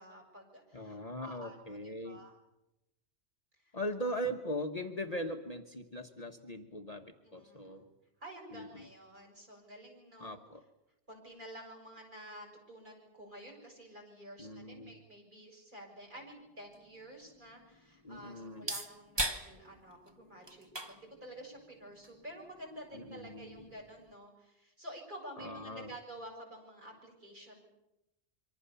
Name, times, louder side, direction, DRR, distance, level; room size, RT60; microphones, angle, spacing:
voice 1, 0.0-2.3 3.6-4.2 7.2-7.8 8.2-10.4 11.1-27.6, right 1 dB, 40° right, 0 dB, 7.0 m, -50 dB
voice 2, 0.7-2.2 3.7-7.9 8.5-8.9 10.2-10.6 14.4-15.0 18.0-18.7 22.9-23.7 25.4-25.9, equal, 35° left, 4 dB, 1.3 m, -40 dB
sound 1, 16.1-24.1, right 1 dB, 20° right, 1.5 m, -43 dB
26.5 x 24.5 x 7.0 m, 0.92 s
omnidirectional pair, 1.3 m